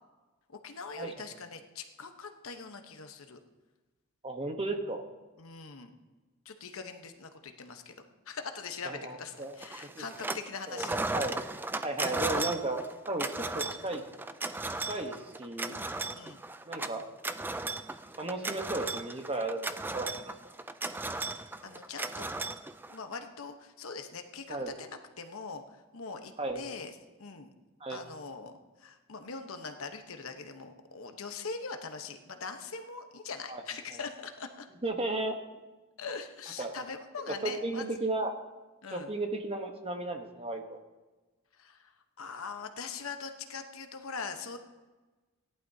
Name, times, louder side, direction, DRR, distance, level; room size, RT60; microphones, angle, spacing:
voice 1, 0.5-3.4 5.4-5.9 6.4-7.9 8.3-11.3 16.1-16.4 21.4-22.3 22.9-24.9 25.2-27.5 27.9-34.7 36.0-37.9 38.8-39.1 41.5-41.9 42.2-44.6, left 4 dB, 70° left, 6 dB, 1.0 m, -42 dB
voice 2, 4.2-5.0 8.8-9.6 9.9-10.0 10.7-11.3 11.8-13.3 13.5-14.0 14.9-15.8 16.7-17.1 18.2-20.3 24.5-24.7 26.4-26.6 27.8-28.0 33.5-33.6 34.8-35.4 36.6-36.8 37.4-38.3 38.9-40.8, right 2 dB, 25° right, 4 dB, 1.0 m, -34 dB
sound 1, 9.6-10.5 10.7-23.1, right 2 dB, 10° right, 0.3 m, -36 dB
18.0 x 11.0 x 2.8 m, 1.2 s
head